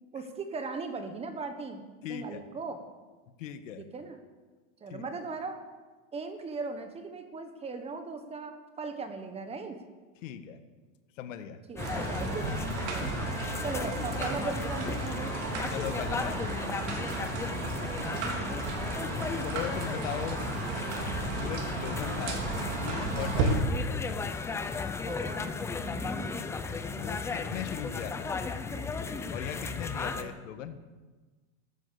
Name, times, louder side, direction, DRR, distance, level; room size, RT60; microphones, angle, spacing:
voice 1, 0.1-1.8 2.1-2.8 3.8-4.2 4.8-5.6 6.1-9.8 11.7-12.5 12.9-13.3 13.6-15.4 17.9-18.6 25.0-26.3 30.1-30.3, right 4 dB, 15° right, 7 dB, 1.3 m, -38 dB
voice 2, 2.0-2.4 3.4-3.8 4.9-5.1 10.2-10.6 11.2-11.6 15.7-16.9 19.4-20.5 21.2-23.6 26.9-28.3 29.3-30.8, left 9 dB, 75° left, 9 dB, 1.7 m, -39 dB
sound 1, 11.8-30.2, left 4 dB, 5° left, 0.5 m, -35 dB
sound 2, 11.8-23.6, right 3 dB, 60° right, 4.1 m, -34 dB
14.5 x 12.5 x 7.0 m, 1.3 s
supercardioid pair, 155°, 38 cm